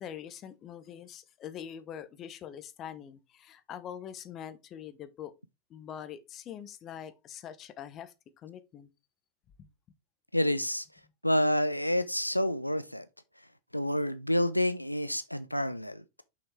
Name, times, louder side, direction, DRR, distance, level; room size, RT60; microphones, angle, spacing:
voice 1, 0.0-5.3 5.7-8.9 9.6-9.7, left 9 dB, 30° left, 0.9 m, -44 dB
voice 2, 10.3-10.8 11.2-13.1 13.7-16.0, left 1 dB, 90° left, 0.5 m, -28 dB
6.4 x 5.7 x 3.5 m
figure-of-eight pair, 90°, 0 cm